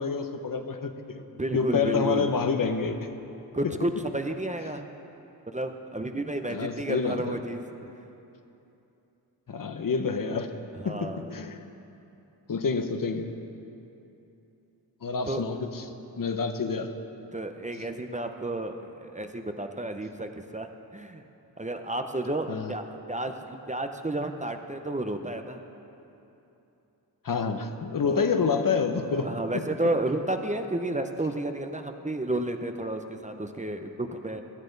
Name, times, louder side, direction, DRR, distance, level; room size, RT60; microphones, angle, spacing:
voice 1, 0.0-1.2 1.5-3.1 3.6-3.7 6.5-7.4 9.5-10.6 10.8-11.6 12.5-13.3 15.0-15.8 16.2-16.9 22.5-22.7 27.2-29.6, left 5 dB, 50° left, 7 dB, 0.9 m, -28 dB
voice 2, 1.1-2.3 3.5-4.8 5.5-7.6 10.8-11.3 15.3-15.5 17.3-21.2 21.6-25.6 28.0-28.3 28.9-34.4, right 1 dB, 15° right, 6 dB, 0.8 m, -31 dB
17.5 x 12.5 x 4.0 m, 2.9 s
cardioid pair, 75°, 42 cm